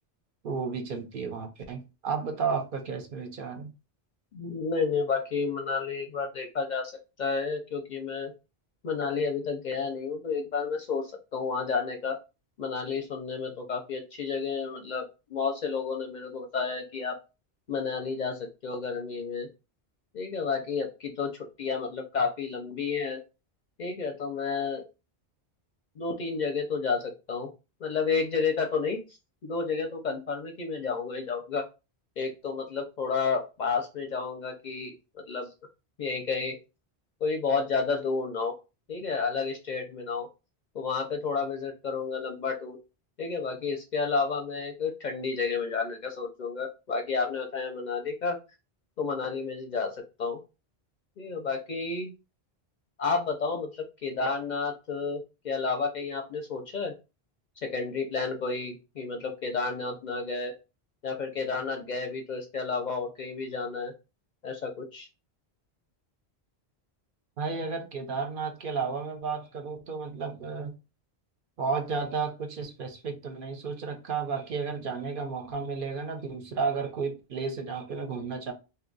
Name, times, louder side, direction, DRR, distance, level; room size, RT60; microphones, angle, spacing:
voice 1, 0.4-3.7 67.4-70.8 71.6-78.5, right 5 dB, 60° right, 0.7 m, -32 dB
voice 2, 4.3-6.9 7.2-8.3 8.8-12.2 12.6-15.0 15.3-17.1 17.7-19.5 20.1-23.2 23.8-24.8 26.0-27.5 27.8-29.0 29.4-31.6 32.2-34.9 35.3-35.5 36.0-36.6 37.2-38.6 38.9-40.3 40.7-42.8 43.2-48.4 49.0-49.9 50.2-50.4 51.2-52.1 53.0-56.9 57.6-60.5 61.0-63.9 64.4-65.1, left 5 dB, 55° left, 0.5 m, -31 dB
2.7 x 2.2 x 3.8 m
omnidirectional pair, 1.1 m